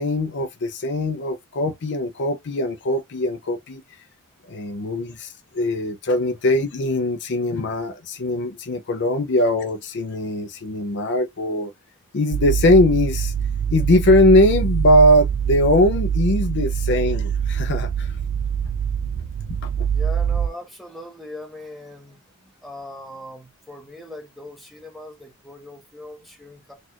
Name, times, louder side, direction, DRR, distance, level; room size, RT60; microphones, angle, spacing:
voice 1, 0.0-3.8 4.5-11.7 12.1-13.3 13.7-18.1 19.8-19.9, left 1 dB, 50° left, 0.5 m, -20 dB
sound 1, 12.3-20.5, right 8 dB, 70° right, 0.3 m, -24 dB
voice 2, 19.9-26.7, left 1 dB, ahead, 1.1 m, -40 dB
4.1 x 2.4 x 2.9 m
head